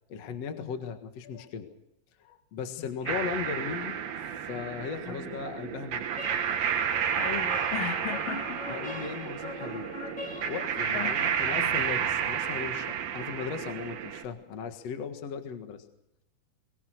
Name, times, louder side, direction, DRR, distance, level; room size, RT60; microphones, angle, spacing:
voice 1, 0.1-1.7 2.2-4.0 4.2-6.1 8.7-9.9 10.2-15.8, left 6 dB, 50° left, 6 dB, 2.4 m, -37 dB
voice 2, 2.8-3.1 5.1-5.4 7.2-8.7 10.9-11.7, left 8 dB, 70° left, 5 dB, 3.7 m, -37 dB
sound 1, 3.1-14.2, right 8 dB, 75° right, 3.3 m, -31 dB
sound 2, 6.2-12.0, left 2 dB, 35° left, 0.7 m, -43 dB
24.5 x 20.0 x 6.5 m, 0.81 s
omnidirectional pair, 4.3 m